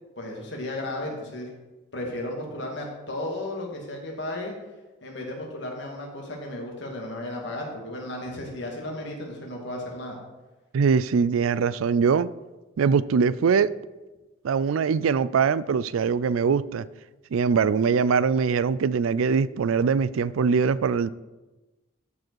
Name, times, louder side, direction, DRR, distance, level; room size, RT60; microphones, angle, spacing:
voice 1, 0.2-1.5 1.9-4.5 5.0-10.2, left 1 dB, 60° left, 2.1 m, -34 dB
voice 2, 10.7-12.3 12.8-13.7 14.4-16.9 17.3-21.1, right 6 dB, 85° right, 0.4 m, -22 dB
13.5 x 4.8 x 4.6 m
head